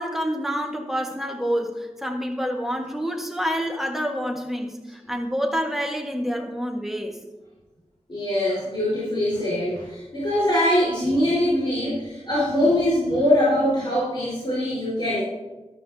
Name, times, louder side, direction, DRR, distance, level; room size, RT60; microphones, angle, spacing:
voice 1, 0.0-7.2, equal, 5° right, 1 dB, 1.5 m, -27 dB
voice 2, 8.1-15.2, left 1 dB, 40° left, -9 dB, 4.3 m, -22 dB
13.5 x 12.5 x 2.8 m, 1.2 s
wide cardioid pair, 75°, 12 cm